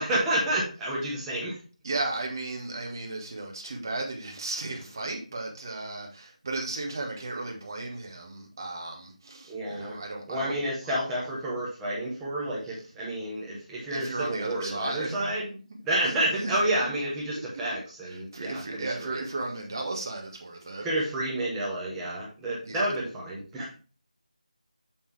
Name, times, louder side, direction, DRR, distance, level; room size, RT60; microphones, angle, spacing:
voice 1, 0.0-1.6 9.5-10.0 10.3-15.5 15.8-19.2 20.8-23.7, right 1 dB, 5° right, 1.4 m, -30 dB
voice 2, 1.8-10.6 11.2-11.3 13.9-15.6 16.0-16.9 17.3-17.4 18.1-20.8 22.6-22.8, right 2 dB, 30° right, 1.4 m, -35 dB
7.2 x 5.3 x 3.3 m
figure-of-eight pair, 165°, 4 cm